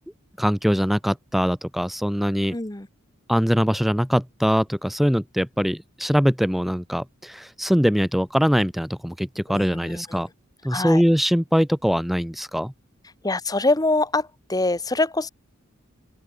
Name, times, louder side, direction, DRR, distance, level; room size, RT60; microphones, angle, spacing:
voice 1, 0.4-2.6 3.3-10.3 10.6-12.7, equal, ahead, 1.0 m, -22 dB
voice 2, 2.5-2.9 9.5-10.2 10.7-11.0 13.2-15.3, left 2 dB, 20° left, 1.3 m, -24 dB
open air
head